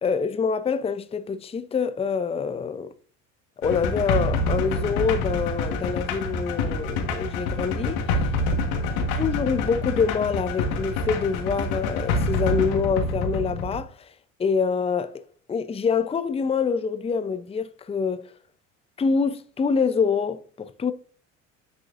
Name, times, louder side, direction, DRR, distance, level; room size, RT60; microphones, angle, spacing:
voice 1, 0.0-2.9 3.6-8.0 9.2-14.1 14.4-18.3 19.0-20.9, left 5 dB, 15° left, 0.5 m, -26 dB
sound 1, 3.6-13.8, left 2 dB, 70° left, 1.5 m, -27 dB
9.7 x 4.9 x 2.5 m
hypercardioid pair, 65°, 39 cm